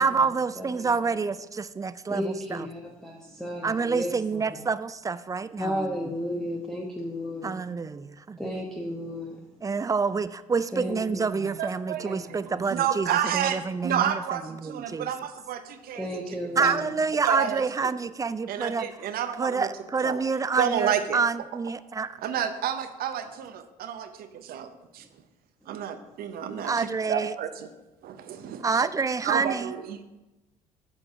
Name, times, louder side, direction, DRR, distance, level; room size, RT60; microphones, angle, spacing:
voice 1, 0.0-2.7 3.6-5.9 7.4-8.5 9.6-14.2 14.5-15.1 16.6-18.9 19.4-22.2 26.5-27.3 28.6-29.7, right 5 dB, 20° right, 15 dB, 0.4 m, -28 dB
voice 2, 0.6-0.9 2.1-4.6 5.6-7.6 8.4-9.4 10.7-11.5 12.0-12.6 15.9-17.0, equal, ahead, -1 dB, 1.1 m, -34 dB
voice 3, 11.6-16.1 16.6-16.8 17.2-17.9 18.5-19.7 20.0-20.2 20.6-21.2 22.2-25.1 25.7-27.7 28.0-28.9 29.2-30.0, right 9 dB, 55° right, 10 dB, 0.8 m, -30 dB
8.2 x 6.9 x 3.7 m, 1.0 s
hypercardioid pair, 55°, 18 cm